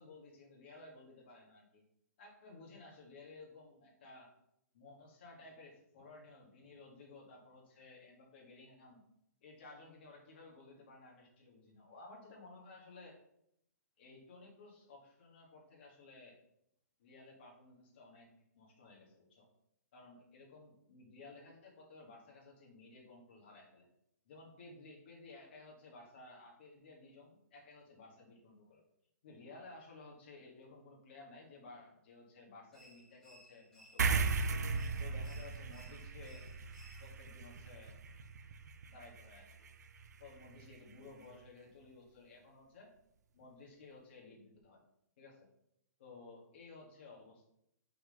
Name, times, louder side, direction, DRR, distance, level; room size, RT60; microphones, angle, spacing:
voice 1, 0.0-1.8 2.2-4.3 4.7-9.0 9.4-13.2 14.0-16.4 17.0-18.3 18.5-19.5 19.9-23.9 24.3-28.8 29.2-34.3 35.0-36.5 37.0-38.0 38.9-39.7 40.2-42.9 43.3-44.8 45.2-45.5 46.0-47.5, left 3 dB, 35° left, -2 dB, 1.8 m, -56 dB
sound 1, 32.7-37.3, right 1 dB, 5° left, 1.2 m, -62 dB
sound 2, 34.0-40.8, right 4 dB, 70° right, 0.6 m, -38 dB
5.7 x 3.8 x 5.2 m, 0.76 s
hypercardioid pair, 175°, 10 cm